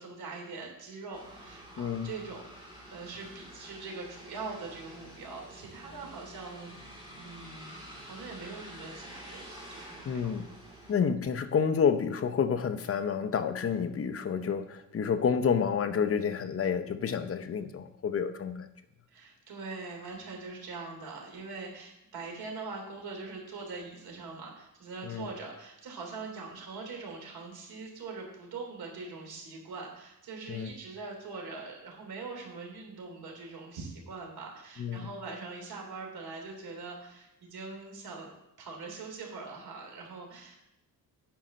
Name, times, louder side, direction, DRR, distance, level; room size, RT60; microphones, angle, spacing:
voice 1, 0.0-10.6 19.1-40.6, right 4 dB, 85° right, 0 dB, 3.1 m, -43 dB
sound 1, 1.1-10.9, equal, 10° right, 3.9 m, -48 dB
voice 2, 1.8-2.1 10.1-10.4 10.9-18.7 25.0-25.3 30.5-30.7 34.8-35.1, left 6 dB, 40° left, 8 dB, 0.8 m, -29 dB
10.5 x 5.1 x 6.3 m, 0.85 s
wide cardioid pair, 135°, 36 cm